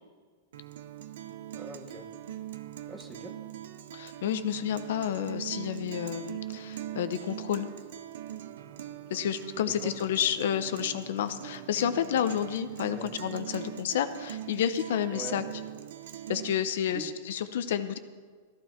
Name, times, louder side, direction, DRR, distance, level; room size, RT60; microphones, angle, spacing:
Guitar, 0.5-16.5, right 11 dB, 70° right, 0.9 m, -41 dB
voice 1, 1.5-2.1 2.9-3.4 9.7-9.9 12.8-13.1 15.1-15.4 16.9-17.1, right 2 dB, 10° right, 6 dB, 1.0 m, -42 dB
voice 2, 3.9-7.7 9.1-15.4 16.3-18.0, left 9 dB, 60° left, 11 dB, 0.8 m, -30 dB
15.0 x 14.0 x 4.5 m, 1.5 s
supercardioid pair, 170°, 0 cm